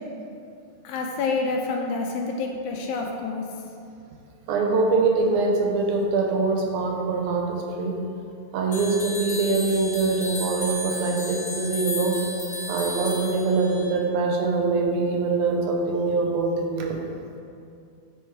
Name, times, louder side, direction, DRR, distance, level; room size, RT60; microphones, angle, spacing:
voice 1, 0.8-3.5, left 3 dB, 85° left, 1 dB, 2.0 m, -28 dB
voice 2, 4.5-8.0 8.5-12.2 12.7-17.0, right 3 dB, 80° right, 1 dB, 2.2 m, -23 dB
sound 1, 8.7-13.9, left 1 dB, 50° left, 1.1 m, -34 dB
7.8 x 3.1 x 4.5 m, 2.5 s
omnidirectional pair, 3.6 m